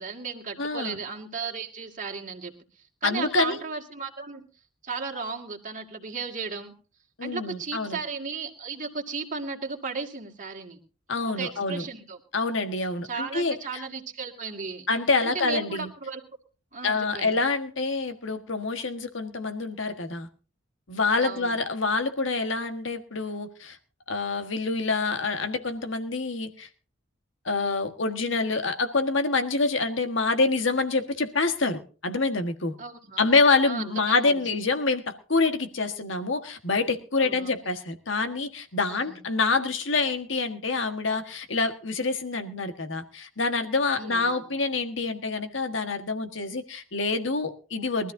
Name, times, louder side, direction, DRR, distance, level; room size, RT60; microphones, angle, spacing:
voice 1, 0.0-2.5 3.0-4.4 4.8-6.7 7.2-10.8 11.3-12.2 13.0-14.9 15.2-16.2 16.7-17.4 21.2-21.5 32.8-33.2 33.7-33.9 34.3-34.4 37.2-37.5 38.9-39.2 44.0-44.5, right 4 dB, 40° right, 2 dB, 2.2 m, -35 dB
voice 2, 0.6-1.0 3.0-3.6 7.2-8.0 11.1-11.8 12.3-13.8 14.9-15.9 16.8-20.3 20.9-23.8 24.1-26.7 27.4-32.7 33.2-48.1, left 3 dB, 65° left, 7 dB, 1.6 m, -26 dB
22.5 x 13.5 x 2.7 m, 0.36 s
head